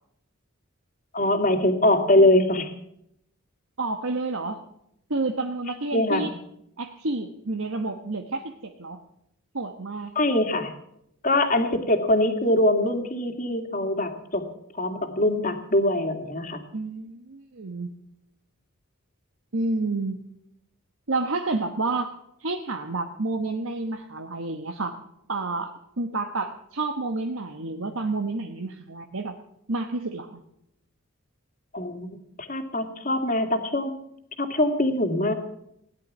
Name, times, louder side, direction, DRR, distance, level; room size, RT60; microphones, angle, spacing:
voice 1, 1.1-2.7 5.9-6.3 10.2-10.7 11.2-14.4 14.8-16.6 31.7-33.9 34.4-35.3, left 1 dB, 35° left, 7 dB, 2.1 m, -23 dB
voice 2, 3.8-4.6 5.1-6.3 6.8-9.0 9.5-10.1 16.7-17.9 19.5-20.2 21.1-22.1 22.4-25.0 25.3-25.7 26.0-29.4 29.7-30.4, right 3 dB, 70° right, 4 dB, 1.2 m, -29 dB
17.5 x 11.0 x 7.3 m, 0.76 s
head